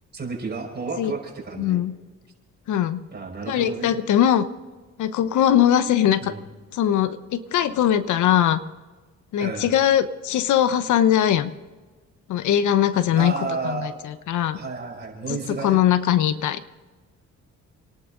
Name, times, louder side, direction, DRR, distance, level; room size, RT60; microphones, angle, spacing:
voice 1, 0.1-1.8 3.1-4.0 6.2-6.4 9.4-9.7 13.2-13.9 14.5-15.8, right 4 dB, 35° right, 0 dB, 5.3 m, -31 dB
voice 2, 1.6-1.9 2.7-3.0 3.5-4.5 5.0-6.3 6.7-8.6 9.3-11.5 12.3-13.3 13.6-14.6 15.3-15.4 15.6-16.8, left 10 dB, 75° left, 13 dB, 0.9 m, -21 dB
28.5 x 11.5 x 3.9 m, 1.3 s
cardioid pair, 90°, 30 cm